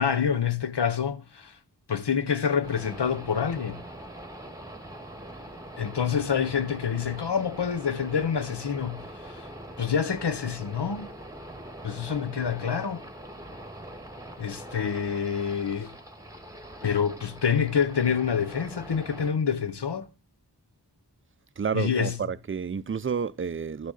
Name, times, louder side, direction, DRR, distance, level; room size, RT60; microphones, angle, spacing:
voice 1, 0.0-1.5 1.9-3.8 5.8-9.5 9.8-11.1 11.8-13.0 14.4-15.9 16.8-20.1 21.7-22.2, left 7 dB, 80° left, 0.8 m, -27 dB
sound 1, 2.6-19.3, right 1 dB, 10° right, 1.3 m, -43 dB
voice 2, 21.6-23.9, right 6 dB, 35° right, 0.4 m, -30 dB
12.5 x 6.3 x 3.9 m
wide cardioid pair, 40°, 40 cm